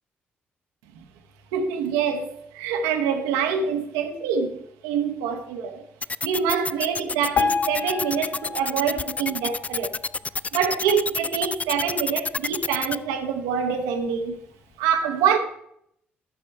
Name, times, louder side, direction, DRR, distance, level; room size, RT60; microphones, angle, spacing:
voice 1, 1.5-5.9 6.2-10.0 10.5-14.4 14.8-15.4, right 7 dB, 70° right, 1.0 m, -25 dB
sound 1, 6.0-13.0, left 4 dB, 25° left, 0.3 m, -28 dB
Piano, 7.3-10.5 11.0-11.1 11.4-11.5 12.2-12.3 12.9-13.0, left 5 dB, 50° left, 0.8 m, -29 dB
12.5 x 6.5 x 4.5 m
figure-of-eight pair, 45°, 6 cm